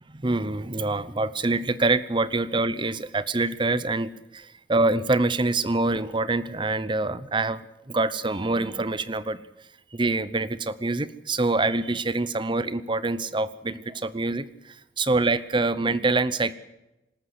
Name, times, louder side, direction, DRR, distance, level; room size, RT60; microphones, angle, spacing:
voice 1, 0.1-9.4 9.9-14.4 15.0-16.5, right 2 dB, 25° right, 16 dB, 0.8 m, -25 dB
25.0 x 13.5 x 8.0 m, 0.95 s
head